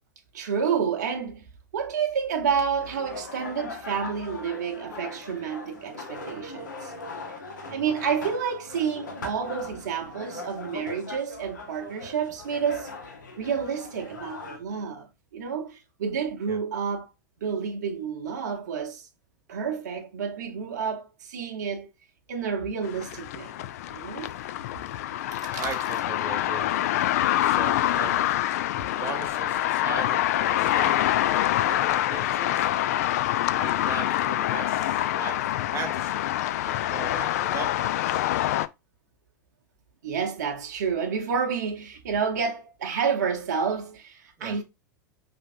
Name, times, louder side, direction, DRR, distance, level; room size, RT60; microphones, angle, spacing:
voice 1, 0.3-1.4 1.7-6.9 7.7-12.9 13.4-17.1 17.4-19.1 19.5-21.9 22.3-23.5 23.9-24.3 25.4-25.7 27.3-27.4 27.8-27.9 28.9-29.0 40.0-44.6, right 6 dB, 60° right, 0.8 m, -29 dB
sound 1, 2.8-14.6, left 3 dB, 70° left, 1.2 m, -40 dB
voice 2, 7.6-8.0 16.5-16.6 25.6-26.8 27.3-28.2 29.0-32.7 33.5-35.5 35.7-36.3 36.6-38.6 44.4-44.6, right 5 dB, 25° right, 1.0 m, -39 dB
sound 2, 22.8-38.7, left 13 dB, 50° left, 0.3 m, -26 dB
5.4 x 3.5 x 2.6 m
figure-of-eight pair, 90°, 10 cm